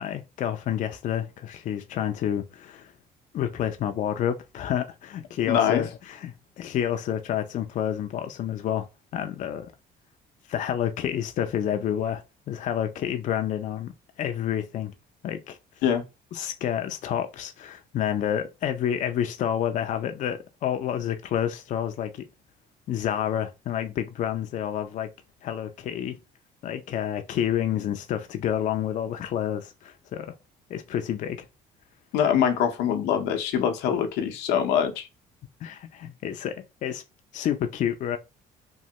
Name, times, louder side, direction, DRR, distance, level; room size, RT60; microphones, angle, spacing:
voice 1, 0.0-2.9 3.3-8.9 9.1-9.7 10.5-13.9 14.2-14.9 15.2-15.6 16.3-22.3 22.9-25.1 25.4-26.2 26.6-30.3 30.7-31.5 35.6-37.0 37.3-38.2, left 10 dB, 50° left, 0.4 m, -29 dB
voice 2, 5.4-5.8 15.8-16.0 32.1-35.1, left 8 dB, 90° left, 0.6 m, -23 dB
3.1 x 2.2 x 2.7 m
cardioid pair, 110°, 17 cm